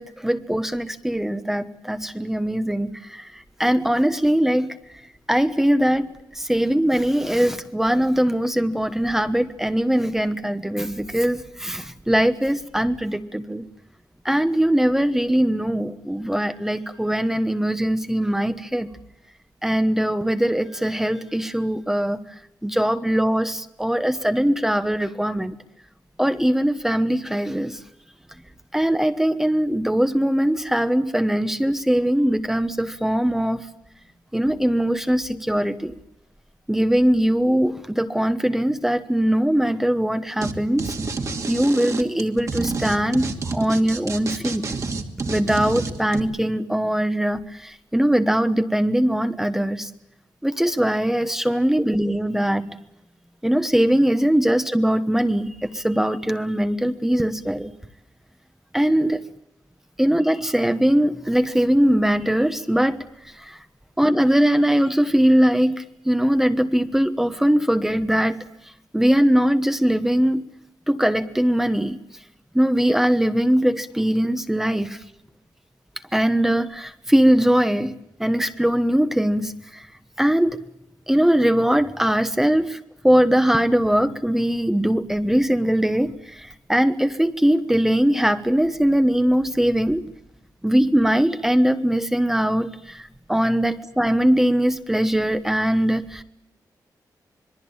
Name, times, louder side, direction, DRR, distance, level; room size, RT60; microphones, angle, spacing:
voice 1, 0.0-4.8 5.3-6.1 6.3-13.6 14.2-18.9 19.6-22.2 22.6-25.6 26.2-27.8 28.7-33.7 34.3-36.0 36.7-40.9 41.5-44.6 45.3-49.9 50.4-52.7 53.4-57.7 58.7-59.2 60.0-63.0 63.3-63.6 64.0-68.4 68.9-70.5 70.9-72.0 72.5-75.0 76.1-79.9 80.2-80.6 81.1-90.0 90.6-96.2, equal, 5° right, 9 dB, 1.2 m, -21 dB
sound 1, 40.4-40.5 40.8-46.2, right 3 dB, 45° right, 2.5 m, -28 dB
26.5 x 21.5 x 8.8 m, 0.80 s
wide cardioid pair, 130°, 7 cm